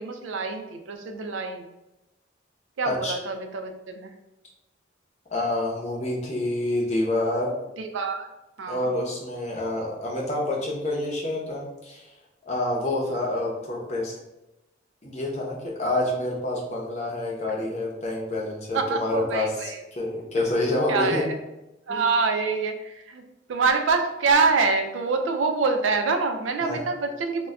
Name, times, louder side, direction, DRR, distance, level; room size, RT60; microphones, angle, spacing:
voice 1, 0.0-1.6 2.8-4.1 7.8-8.3 8.6-8.9 18.7-19.8 20.9-21.3 21.9-23.2 23.5-27.5, right 4 dB, 80° right, 5 dB, 0.4 m, -25 dB
voice 2, 5.3-7.5 8.7-12.1 12.5-14.2 15.0-21.3 21.9-22.0 26.6-26.8, left 1 dB, 35° left, -2 dB, 0.6 m, -27 dB
2.2 x 2.1 x 3.5 m, 0.95 s
head